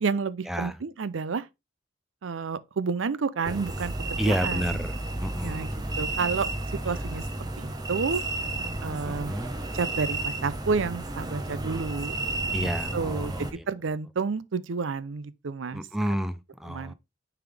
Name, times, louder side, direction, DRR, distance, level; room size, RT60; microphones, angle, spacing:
voice 1, 0.0-1.5 2.2-4.9 5.4-6.5 6.8-7.2 7.6-8.2 8.8-9.3 9.7-12.2 12.6-15.8 16.7-16.9, right 5 dB, 75° right, 0.5 m, -30 dB
sound 1, 3.4-13.5, right 2 dB, 20° right, 0.9 m, -32 dB
voice 2, 4.2-5.7 6.8-7.0 9.1-9.5 12.5-13.6 15.7-16.9, equal, ahead, 0.5 m, -31 dB
9.3 x 3.6 x 3.4 m
head